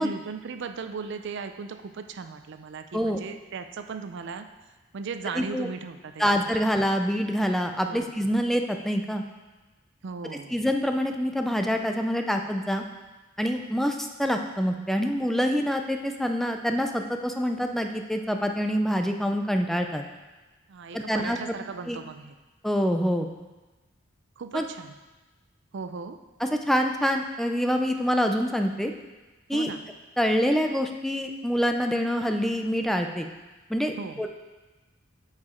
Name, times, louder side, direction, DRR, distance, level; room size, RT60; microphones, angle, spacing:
voice 1, 0.0-4.5 4.9-6.6 7.8-8.1 10.0-10.6 20.7-22.4 24.4-24.9 25.7-26.2 29.5-29.8 34.0-34.2, right 5 dB, 65° right, 8 dB, 0.4 m, -37 dB
voice 2, 5.4-5.7 6.2-9.2 10.5-12.8 13.4-20.0 20.9-21.5 21.9-22.0 22.6-23.3 24.5-24.6 26.6-28.9 29.5-29.7 30.2-33.2 33.7-34.3, equal, ahead, 4 dB, 0.4 m, -26 dB
8.3 x 4.9 x 4.3 m, 1.2 s
head